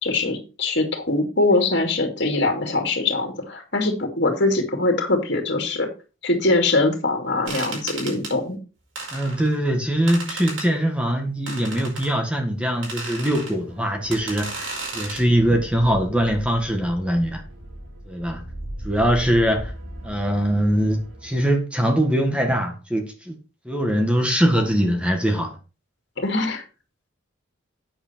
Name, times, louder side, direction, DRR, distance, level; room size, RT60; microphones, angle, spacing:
voice 1, 0.0-5.9 6.2-8.6 26.2-26.6, left 2 dB, 55° left, 2.7 m, -22 dB
sound 1, 7.5-8.3 9.0-9.5 10.1-10.7 11.5-12.1 12.8-13.5 14.1-15.2, right 3 dB, 75° right, 6.2 m, -33 dB
voice 2, 9.1-17.4 18.1-18.4 18.8-19.7 20.0-23.3 23.7-25.6, equal, 5° right, 1.7 m, -22 dB
sound 2, 13.3-21.5, right 1 dB, 55° right, 5.2 m, -38 dB
9.0 x 8.1 x 4.5 m
head